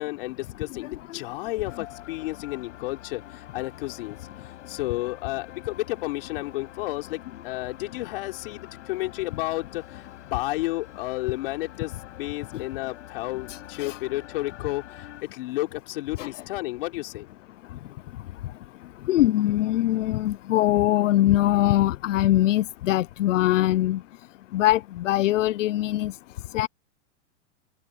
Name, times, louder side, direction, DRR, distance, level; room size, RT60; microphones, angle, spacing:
voice 1, 0.0-4.2 4.7-17.3, left 19 dB, 50° left, 3.8 m, -32 dB
voice 2, 0.8-1.2 1.8-1.9 12.5-12.6 13.5-14.0 16.2-16.3 19.1-24.0 24.5-26.1 26.5-26.7, left 14 dB, 90° left, 0.7 m, -23 dB
sound 1, 1.7-15.2, left 12 dB, 75° left, 6.3 m, -46 dB
supercardioid pair, 170°, 36 cm